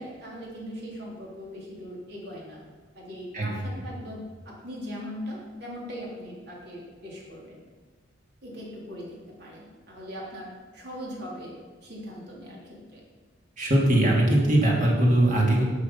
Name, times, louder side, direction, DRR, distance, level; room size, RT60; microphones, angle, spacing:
voice 1, 0.0-2.6 2.9-7.6 8.4-11.5 11.8-13.0, equal, 60° right, -4 dB, 3.5 m, -40 dB
voice 2, 3.3-3.8 13.6-15.6, right 1 dB, 45° right, -2 dB, 2.7 m, -21 dB
11.5 x 7.8 x 5.6 m, 1.4 s
head